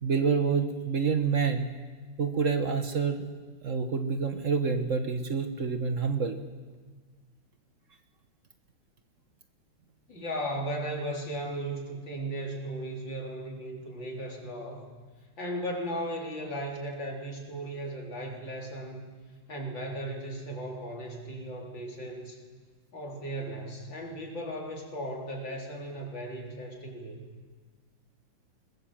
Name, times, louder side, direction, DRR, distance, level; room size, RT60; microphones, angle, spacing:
voice 1, 0.0-1.7 2.2-3.3 3.6-6.4, right 5 dB, 45° right, 7 dB, 1.5 m, -27 dB
voice 2, 10.1-14.9 15.4-19.1 19.5-22.4 22.9-27.2, right 1 dB, 80° left, 0 dB, 4.3 m, -36 dB
23.5 x 20.5 x 7.4 m, 1.5 s
omnidirectional pair, 2.0 m